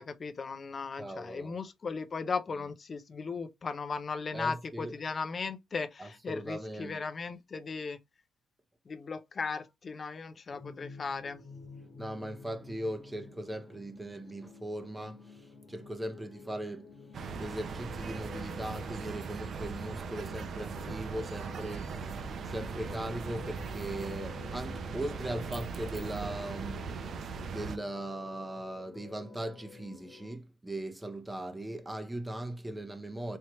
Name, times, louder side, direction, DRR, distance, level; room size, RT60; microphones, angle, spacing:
voice 1, 0.0-8.0 8.9-11.4, left 4 dB, 40° left, 0.7 m, -37 dB
voice 2, 1.0-1.6 4.3-4.9 6.0-7.0 12.0-15.4 15.7-16.9 17.4-27.2 27.5-33.4, right 1 dB, 10° right, 0.8 m, -39 dB
sound 1, 10.5-30.4, left 5 dB, 70° left, 1.3 m, -51 dB
sound 2, 17.1-27.8, right 5 dB, 60° right, 0.6 m, -39 dB
4.4 x 3.1 x 3.0 m
cardioid pair, 90°, 0 cm